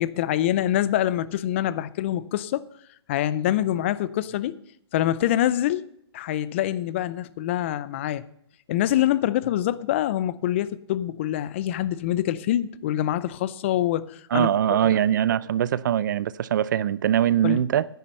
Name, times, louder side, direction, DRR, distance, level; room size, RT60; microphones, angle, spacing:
voice 1, 0.0-2.7 3.1-4.6 4.9-5.9 6.1-8.2 8.7-15.0 17.4-17.6, left 12 dB, 25° left, 0.4 m, -25 dB
voice 2, 14.3-17.9, right 10 dB, 45° right, 0.5 m, -22 dB
10.0 x 9.3 x 5.5 m
hypercardioid pair, 165°, 14 cm